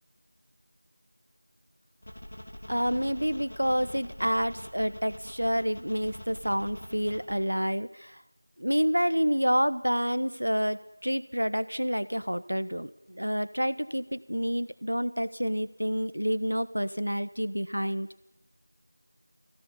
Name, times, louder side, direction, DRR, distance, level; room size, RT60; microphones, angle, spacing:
sound 1, 2.0-7.3, left 1 dB, 35° left, 3.0 m, -43 dB
voice 1, 2.7-8.2 8.6-18.1, equal, 80° right, 14 dB, 1.2 m, -28 dB
22.5 x 16.5 x 7.0 m, 0.88 s
figure-of-eight pair, 175°, 0 cm